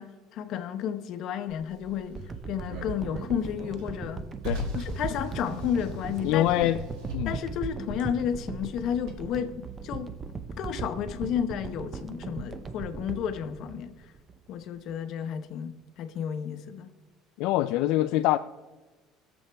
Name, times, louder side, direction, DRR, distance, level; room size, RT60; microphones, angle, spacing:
voice 1, 0.0-2.2 2.5-4.2 4.7-6.5 7.2-10.1 10.6-14.1 14.5-16.9, left 8 dB, 50° left, 0.9 m, -32 dB
Car, 1.5-9.2, equal, 70° right, 2.1 m, -40 dB
sound 1, 2.1-14.4 14.9-15.0, right 5 dB, 25° right, 0.6 m, -38 dB
voice 2, 6.2-6.8 7.1-7.3 17.4-18.4, left 15 dB, 70° left, 0.3 m, -24 dB
20.5 x 7.2 x 3.4 m
cardioid pair, 155°, 0 cm